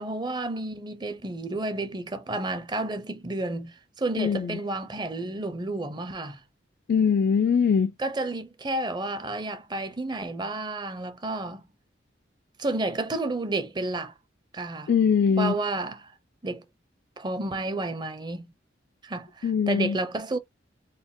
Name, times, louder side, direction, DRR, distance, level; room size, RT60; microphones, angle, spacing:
voice 1, 0.0-6.4 8.0-11.7 12.6-14.1 14.5-14.9 15.4-16.1 16.4-16.6 17.2-18.5 19.0-20.4, right 2 dB, 25° right, 0.6 m, -31 dB
voice 2, 4.2-4.6 6.9-7.9 14.9-15.5 19.4-20.0, left 6 dB, 60° left, 0.3 m, -22 dB
4.1 x 2.2 x 3.6 m
head